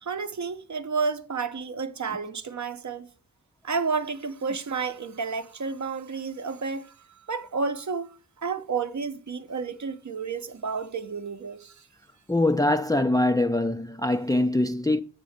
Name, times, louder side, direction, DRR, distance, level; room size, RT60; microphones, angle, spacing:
voice 1, 0.0-3.1 3.6-11.9, right 5 dB, 50° right, 0.8 m, -31 dB
voice 2, 12.3-15.0, left 1 dB, 10° left, 0.4 m, -23 dB
7.6 x 3.7 x 6.4 m
cardioid pair, 40°, 36 cm